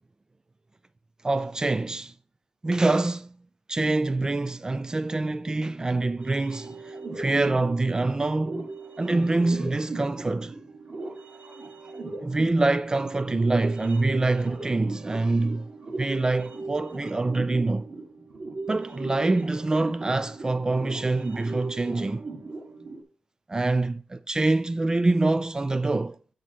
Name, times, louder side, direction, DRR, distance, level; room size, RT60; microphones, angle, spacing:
voice 1, 1.2-2.1 2.6-3.3 3.7-8.7 9.0-10.6 12.2-15.7 16.0-17.9 18.7-22.2 23.5-26.2, right 2 dB, 25° right, 0.4 m, -25 dB
sound 1, 6.2-23.0, right 3 dB, 50° right, 2.0 m, -38 dB
9.1 x 5.2 x 4.2 m
cardioid pair, 75°, 3 cm